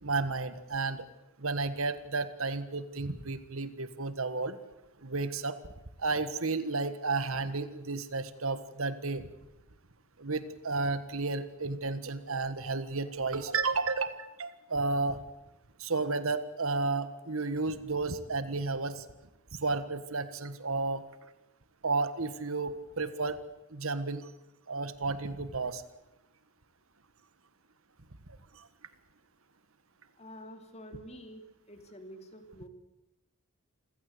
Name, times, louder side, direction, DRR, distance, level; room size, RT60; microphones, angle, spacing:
voice 1, 0.0-1.1 1.4-4.6 5.0-5.6 6.0-9.2 10.2-15.2 15.8-19.0 19.6-21.0 21.8-23.4 23.7-24.3 24.7-25.8 28.6-28.7, right 3 dB, 70° right, 13 dB, 1.5 m, -32 dB
voice 2, 30.2-32.7, equal, 30° left, 7 dB, 2.7 m, -48 dB
27.5 x 16.5 x 8.0 m, 0.95 s
head